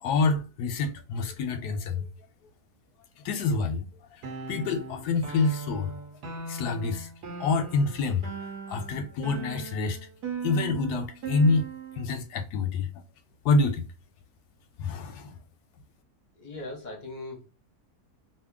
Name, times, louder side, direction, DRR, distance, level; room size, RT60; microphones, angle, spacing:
voice 1, 0.0-2.1 3.2-3.9 4.1-4.2 4.5-5.9 6.5-7.1 7.4-8.3 8.7-10.0 10.4-11.7 12.0-12.9 13.4-13.8 14.8-15.3, left 3 dB, 90° left, 1.1 m, -27 dB
sound 1, 4.2-12.1, right 4 dB, 90° right, 1.3 m, -39 dB
voice 2, 16.4-17.5, left 2 dB, 40° left, 0.7 m, -39 dB
2.8 x 2.6 x 3.5 m
omnidirectional pair, 1.7 m